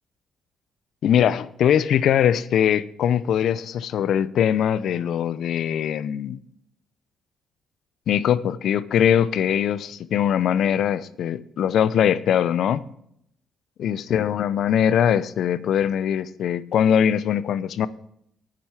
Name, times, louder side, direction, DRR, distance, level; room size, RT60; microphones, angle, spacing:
voice 1, 1.0-6.4 8.1-12.8 13.8-17.9, left 9 dB, 70° left, 17 dB, 0.6 m, -21 dB
9.0 x 7.7 x 6.4 m, 0.72 s
cardioid pair, 90°, 0 cm